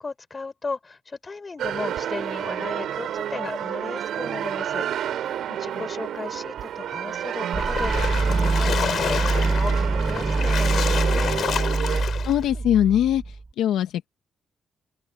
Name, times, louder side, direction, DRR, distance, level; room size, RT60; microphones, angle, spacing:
voice 1, 0.0-11.4, left 4 dB, 30° left, 5.4 m, -36 dB
sound 1, 1.6-12.0, right 10 dB, 70° right, 4.1 m, -30 dB
sound 2, 7.5-13.5, right 3 dB, 25° right, 1.1 m, -24 dB
Splash splatter, 7.6-12.4, left 8 dB, 60° left, 8.0 m, -29 dB
voice 2, 12.2-13.2 13.6-14.1, left 11 dB, 80° left, 1.6 m, -21 dB
cardioid pair, 90°, 0 cm